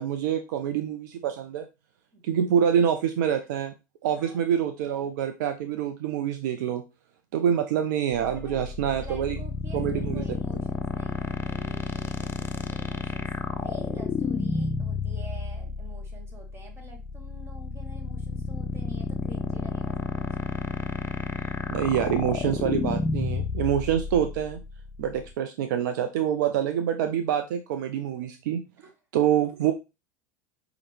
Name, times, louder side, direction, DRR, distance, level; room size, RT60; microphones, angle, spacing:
voice 1, 0.0-1.7 2.2-3.7 4.0-6.8 7.3-9.4 9.7-10.2 21.7-24.6 25.0-28.6 29.1-29.7, right 9 dB, 70° right, 8 dB, 0.5 m, -26 dB
voice 2, 4.1-4.5 8.3-13.3 13.5-20.3 28.2-28.3 28.8-28.9, right 1 dB, 25° right, 2 dB, 1.7 m, -48 dB
sound 1, 8.1-25.3, left 4 dB, 20° left, 0.6 m, -31 dB
5.0 x 3.0 x 3.2 m, 0.27 s
hypercardioid pair, 85°, 10 cm